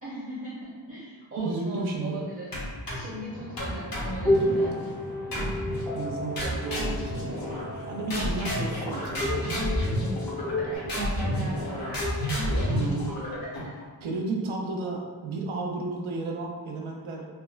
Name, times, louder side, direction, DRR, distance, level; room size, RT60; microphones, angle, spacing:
voice 1, 0.0-2.5 2.9-4.8 10.9-11.8, right 1 dB, 30° right, -8 dB, 0.7 m, -38 dB
voice 2, 1.4-2.2 5.4-7.2 7.8-9.5 12.7-13.2 14.0-17.3, right 3 dB, 85° right, 0 dB, 0.6 m, -33 dB
sound 1, 2.5-3.2 3.6-4.7 5.3-5.9 6.4-7.8 8.1-13.8, equal, 50° left, 0.8 m, -30 dB
sound 2, 3.3-10.7, left 1 dB, 10° left, 0.5 m, -31 dB
3.5 x 2.1 x 2.3 m, 1.5 s
wide cardioid pair, 95°, 47 cm